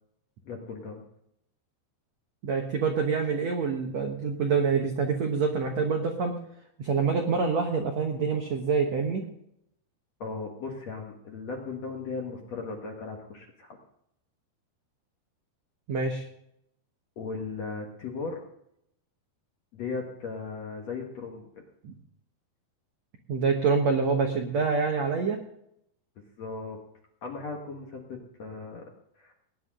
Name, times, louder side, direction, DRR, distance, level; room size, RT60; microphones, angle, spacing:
voice 1, 0.5-1.0 10.2-13.8 17.2-18.4 19.7-21.5 26.4-26.8 27.2-28.9 29.2-29.3, left 4 dB, 55° left, 1 dB, 2.0 m, -37 dB
voice 2, 2.4-6.4 6.8-9.2 15.9-16.3 21.8-21.9 23.3-25.4, right 5 dB, 70° right, 2 dB, 1.6 m, -26 dB
19.5 x 10.5 x 3.8 m, 0.76 s
omnidirectional pair, 5.0 m